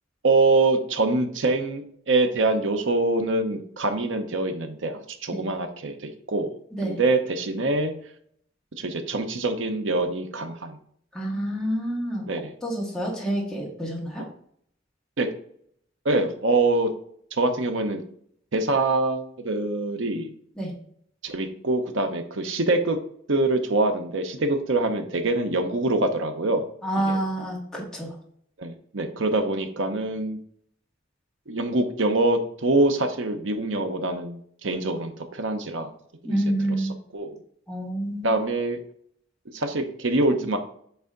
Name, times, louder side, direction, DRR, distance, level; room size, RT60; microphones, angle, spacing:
voice 1, 0.2-7.9 8.8-10.8 12.3-12.5 14.2-14.3 15.2-15.3 16.0-16.9 17.3-18.0 18.5-20.3 21.2-23.0 23.3-26.6 27.1-27.2 28.6-30.4 31.5-35.9 36.2-37.4 38.2-38.8 39.5-40.6, right 2 dB, 80° right, 6 dB, 0.9 m, -25 dB
voice 2, 11.1-12.3 12.6-14.2 20.6-20.7 26.8-28.1 36.2-37.0 37.7-38.3, right 1 dB, 5° left, -4 dB, 1.9 m, -28 dB
8.1 x 3.4 x 3.8 m, 0.64 s
head